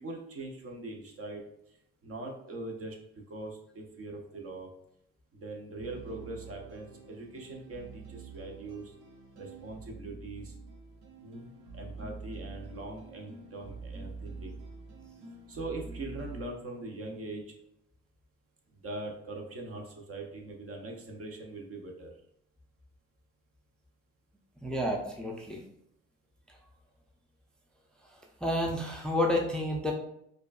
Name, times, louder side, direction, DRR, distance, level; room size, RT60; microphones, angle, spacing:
voice 1, 0.0-1.4 1.7-1.8 2.0-3.0 3.3-4.7 5.3-8.9 9.4-10.5 11.2-14.6 15.5-17.4 18.7-22.1, right 2 dB, 50° right, 1 dB, 0.9 m, -42 dB
sound 1, 5.8-16.5, right 4 dB, 75° right, 0.9 m, -46 dB
voice 2, 24.6-25.6 28.4-29.9, left 1 dB, 5° left, 1 dB, 0.5 m, -30 dB
4.9 x 2.4 x 2.4 m, 0.75 s
cardioid pair, 90°, 30 cm